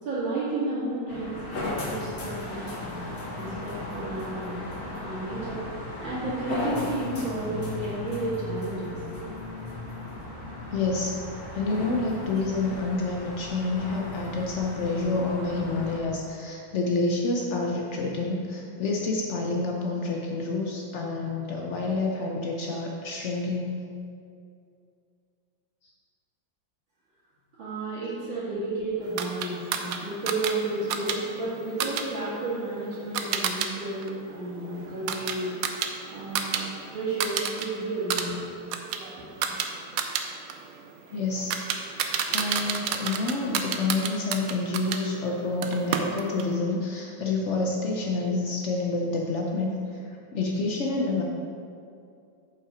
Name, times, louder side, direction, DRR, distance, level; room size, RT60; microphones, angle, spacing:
voice 1, 0.0-3.0 3.4-4.6 4.9-9.0 27.6-35.5 36.1-38.4, right 2 dB, 70° right, -14 dB, 2.7 m, -32 dB
sound 1, 1.1-16.0, left 2 dB, 50° left, 1.8 m, -36 dB
voice 2, 10.7-11.2 11.5-23.8 41.1-41.6 42.2-51.2, left 3 dB, 90° left, -1 dB, 0.6 m, -28 dB
sound 2, 29.2-33.7 34.0-36.6 36.9-37.7 38.0-45.0 45.6-46.5, right 7 dB, 85° right, 0.7 m, -31 dB
7.5 x 5.5 x 4.9 m, 2.4 s
omnidirectional pair, 2.2 m